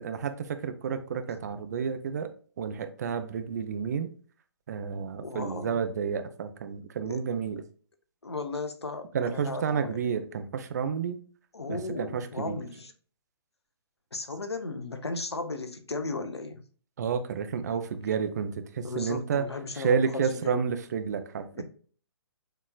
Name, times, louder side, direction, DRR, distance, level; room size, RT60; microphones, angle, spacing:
voice 1, 0.0-2.3 2.6-4.1 4.7-7.6 9.1-11.2 11.7-12.6 17.0-19.4 19.8-21.6, right 6 dB, 40° right, 0.5 m, -30 dB
voice 2, 5.2-5.8 7.0-7.2 8.2-10.0 11.5-12.9 14.1-16.6 18.8-20.6 21.5-21.6, left 3 dB, 70° left, 0.9 m, -35 dB
6.6 x 3.0 x 2.3 m
figure-of-eight pair, 130°, 14 cm